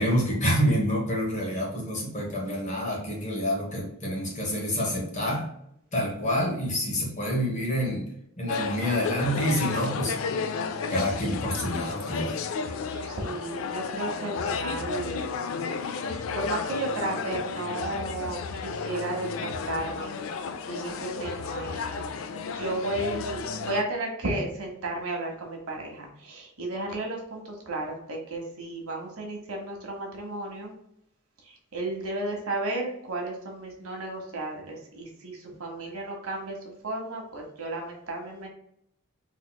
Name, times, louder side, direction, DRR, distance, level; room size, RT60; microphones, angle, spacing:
voice 1, 0.0-5.5 5.9-8.1 8.4-10.1 10.9-12.3, equal, 35° left, -1 dB, 1.1 m, -27 dB
sound 1, 8.5-23.8, left 5 dB, 65° left, 0.3 m, -32 dB
voice 2, 12.9-15.4 16.1-20.2 20.7-22.1 22.5-30.7 31.4-36.6 36.8-38.5, right 2 dB, 80° right, 1 dB, 1.1 m, -34 dB
4.0 x 3.0 x 2.2 m, 0.74 s
head